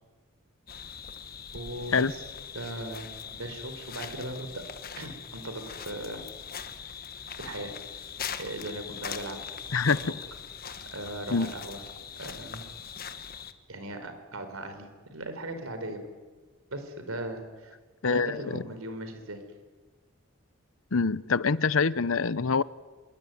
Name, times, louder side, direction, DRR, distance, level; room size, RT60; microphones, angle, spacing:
sound 1, 0.7-13.5, left 7 dB, 45° left, 1.5 m, -41 dB
voice 1, 1.5-2.2 2.5-4.6 5.0-6.2 7.4-8.0 8.4-9.4 9.9-10.0 10.9-11.8 12.2-12.7 13.7-16.0 16.7-17.7 18.1-19.4, right 1 dB, 90° right, 8 dB, 4.7 m, -38 dB
voice 2, 9.7-10.1 11.3-11.5 18.0-18.6 20.9-22.6, left 5 dB, 75° left, 18 dB, 0.8 m, -25 dB
26.5 x 23.0 x 9.4 m, 1.4 s
head